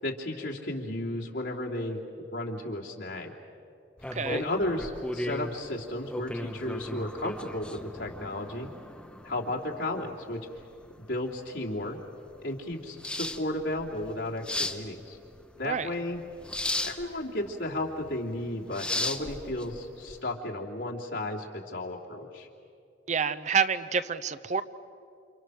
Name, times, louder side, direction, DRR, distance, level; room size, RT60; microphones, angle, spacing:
voice 1, 0.0-2.0 2.3-3.3 4.3-8.7 9.2-10.4 11.0-12.0 12.4-15.2 15.6-16.2 16.8-22.5, left 1 dB, 75° left, -2 dB, 3.1 m, -34 dB
sound 1, 4.0-20.2, left 1 dB, 5° left, 0.9 m, -37 dB
voice 2, 4.1-4.4 15.6-15.9 23.1-24.6, right 6 dB, 40° right, 13 dB, 0.7 m, -28 dB
29.5 x 28.0 x 6.5 m, 2.5 s
head